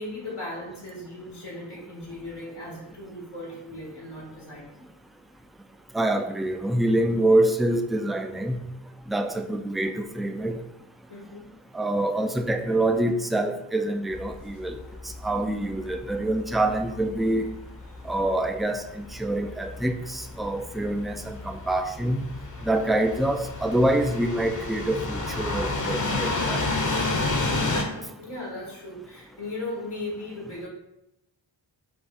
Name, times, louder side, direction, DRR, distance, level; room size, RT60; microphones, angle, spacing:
voice 1, 0.0-4.8 11.1-11.5 15.4-15.7 27.8-30.7, left 1 dB, 90° left, -4 dB, 1.5 m, -37 dB
voice 2, 5.9-8.6 9.1-10.6 11.7-14.8 15.2-17.5 18.0-22.2 22.6-26.6, right 1 dB, ahead, 6 dB, 0.3 m, -26 dB
sound 1, 14.1-27.8, left 2 dB, 40° left, 0.8 m, -31 dB
5.3 x 2.3 x 4.2 m, 0.89 s
wide cardioid pair, 40°, 48 cm